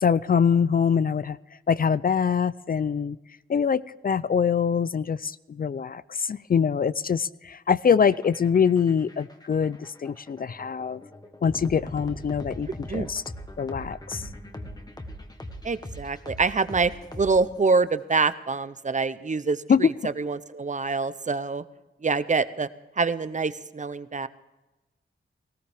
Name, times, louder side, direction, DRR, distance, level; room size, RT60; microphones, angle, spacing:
voice 1, 0.0-1.4 1.7-3.2 3.5-11.0 11.4-13.2 13.6-14.2 19.7-19.8, left 6 dB, 45° left, 18 dB, 0.4 m, -24 dB
sound 1, 8.1-17.8, left 1 dB, 20° left, 1.3 m, -40 dB
voice 2, 15.6-16.9 17.2-21.6 22.0-22.7 23.0-24.3, right 4 dB, 35° right, 14 dB, 0.6 m, -25 dB
18.5 x 17.0 x 3.5 m, 1.1 s
wide cardioid pair, 130°, 21 cm